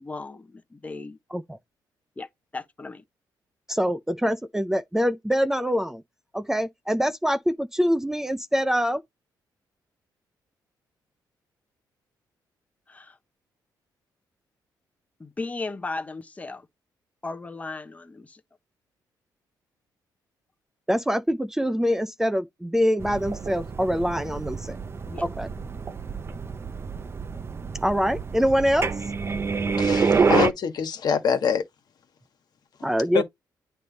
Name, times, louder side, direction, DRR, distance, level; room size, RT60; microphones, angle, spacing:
voice 1, 0.0-1.2 2.2-3.0 12.9-13.2 15.2-16.7 17.2-18.4 25.1-25.2, left 3 dB, 20° left, 1.0 m, -36 dB
voice 2, 3.7-6.0 6.3-9.0 20.9-24.8 25.2-25.5 27.8-28.9 32.8-33.2, equal, 5° right, 0.6 m, -24 dB
sound 1, 23.0-30.5, right 5 dB, 30° right, 0.8 m, -27 dB
voice 3, 29.8-31.6 33.1-33.2, left 7 dB, 60° left, 1.6 m, -24 dB
9.1 x 3.3 x 4.1 m
cardioid pair, 100°, 8 cm